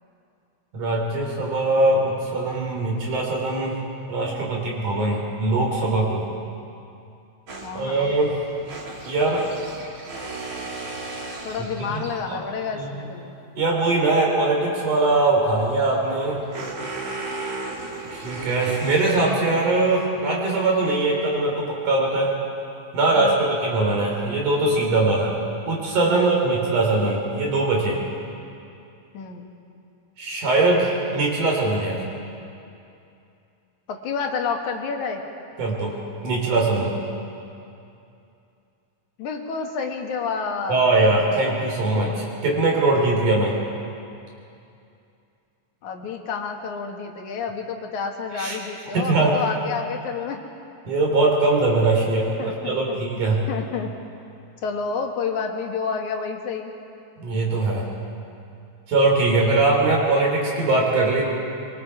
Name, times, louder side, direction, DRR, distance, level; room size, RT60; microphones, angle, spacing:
voice 1, 0.7-3.7 4.1-6.2 7.7-8.4 9.0-9.5 11.8-12.0 12.3-12.4 12.8-13.0 13.6-16.4 18.1-22.3 22.9-25.4 25.7-28.0 30.2-32.0 35.6-36.0 36.2-37.0 40.7-43.5 48.3-48.6 48.9-49.4 50.9-53.4 57.2-57.9 58.9-61.3, right 2 dB, 75° right, -2 dB, 5.3 m, -21 dB
sound 1, 7.5-12.4 15.4-19.7, right 3 dB, 45° right, 2.7 m, -36 dB
voice 2, 7.6-8.2 11.4-13.3 23.2-23.4 26.1-26.3 29.1-29.5 33.9-35.2 39.2-40.9 45.8-50.4 52.4-53.0 53.5-53.9 54.6-56.7, left 5 dB, 70° left, 3 dB, 2.8 m, -29 dB
24.5 x 23.5 x 4.8 m, 2.6 s
omnidirectional pair, 3.6 m